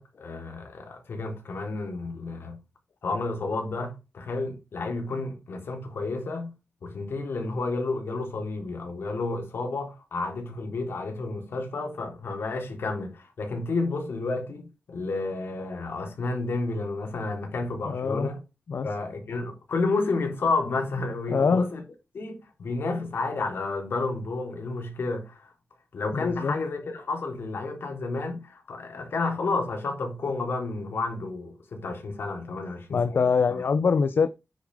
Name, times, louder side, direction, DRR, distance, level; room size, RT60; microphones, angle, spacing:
voice 1, 0.0-2.6 3.0-6.5 6.8-18.4 18.8-21.8 22.1-25.5 25.9-33.2 33.5-33.6, left 3 dB, 80° left, 3.8 m, -31 dB
voice 2, 17.8-18.3 18.7-18.9 21.3-21.7 26.1-26.5 32.9-34.3, left 5 dB, 65° left, 0.6 m, -24 dB
10.0 x 6.9 x 3.6 m
wide cardioid pair, 175°, 4 cm